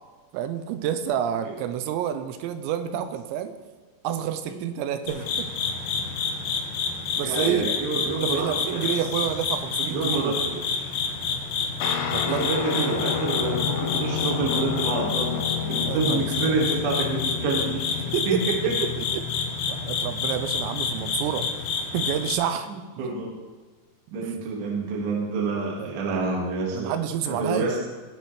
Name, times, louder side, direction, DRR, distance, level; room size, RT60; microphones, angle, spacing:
voice 1, 0.3-3.6 4.0-5.5 7.2-7.7 8.2-10.4 12.1-12.5 12.8-13.1 15.8-16.6 18.1-18.6 19.1-19.3 19.7-21.5 21.9-22.7 23.0-23.1 24.2-24.4 25.8-25.9 26.7-27.7, right 9 dB, 85° right, 9 dB, 2.9 m, -29 dB
sound 1, 5.1-22.4, left 5 dB, 75° left, 2.0 m, -29 dB
voice 2, 7.2-8.9 9.8-10.9 12.2-18.0 18.3-18.4 18.6-18.7 22.7-23.3 24.1-27.0 27.2-27.8, right 3 dB, 60° right, -2 dB, 3.4 m, -28 dB
Guitar, 11.8-21.5, left 8 dB, 90° left, 2.0 m, -31 dB
18.5 x 7.7 x 3.2 m, 1.4 s
omnidirectional pair, 5.2 m